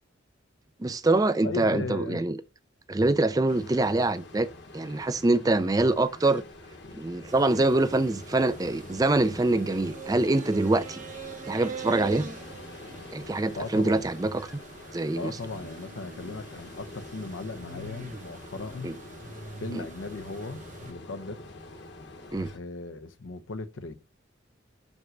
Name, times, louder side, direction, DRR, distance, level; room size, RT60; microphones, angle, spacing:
voice 1, 0.8-2.4 2.9-4.5 4.7-6.4 6.9-11.0 11.5-12.3 13.1-14.5 14.9-15.3 18.8-18.9 19.7-19.9 22.3-22.5, right 2 dB, 20° right, 0.4 m, -24 dB
voice 2, 1.4-2.2 13.5-14.0 15.2-18.9 19.6-21.4 22.5-23.9, left 3 dB, 85° left, 0.7 m, -37 dB
Ocean, 3.5-22.6, left 2 dB, 60° left, 1.3 m, -46 dB
sound 1, 7.3-20.9, right 4 dB, 40° right, 0.9 m, -43 dB
6.1 x 5.3 x 6.2 m
head